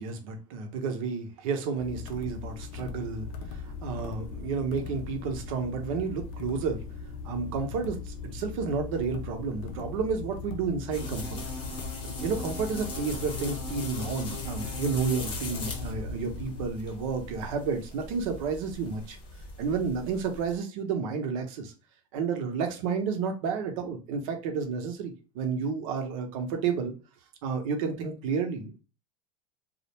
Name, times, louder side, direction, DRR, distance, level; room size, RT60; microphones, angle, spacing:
voice 1, 0.0-6.8 7.2-11.4 12.0-19.2 19.6-21.7 22.1-26.9 27.4-28.8, right 5 dB, 70° right, 4 dB, 0.8 m, -31 dB
sound 1, 1.8-16.7, left 5 dB, 80° left, 0.5 m, -39 dB
sound 2, 10.9-20.6, left 2 dB, 30° left, 0.7 m, -39 dB
2.4 x 2.1 x 2.9 m, 0.32 s
supercardioid pair, 125°, 18 cm